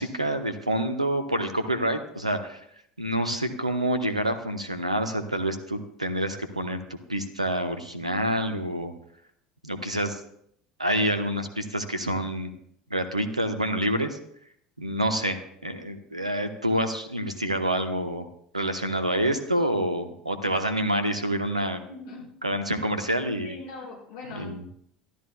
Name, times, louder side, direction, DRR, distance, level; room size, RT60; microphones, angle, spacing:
voice 1, 0.0-2.6 3.0-8.9 9.6-10.2 10.8-12.5 12.9-14.2 14.8-18.3 18.5-21.8 22.4-23.5 24.3-24.6, right 1 dB, 85° right, 9 dB, 1.2 m, -27 dB
voice 2, 21.9-22.2 23.4-24.5, left 3 dB, 55° left, -3 dB, 6.2 m, -41 dB
23.5 x 14.0 x 2.4 m, 0.68 s
figure-of-eight pair, 70°, 3 cm